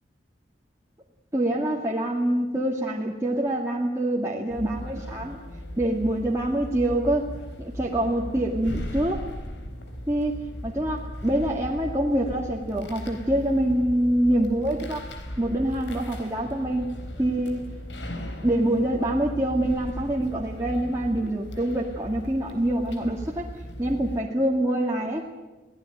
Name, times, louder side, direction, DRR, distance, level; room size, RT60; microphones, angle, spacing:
voice 1, 1.3-5.4 5.8-7.3 7.6-9.3 10.1-10.4 10.6-15.0 15.4-16.9 17.2-17.7 18.4-23.5 23.8-25.2, right 1 dB, 15° right, -3 dB, 2.0 m, -25 dB
sound 1, 4.5-24.2, equal, 80° left, 4.1 m, -37 dB
24.0 x 17.5 x 9.0 m, 1.2 s
head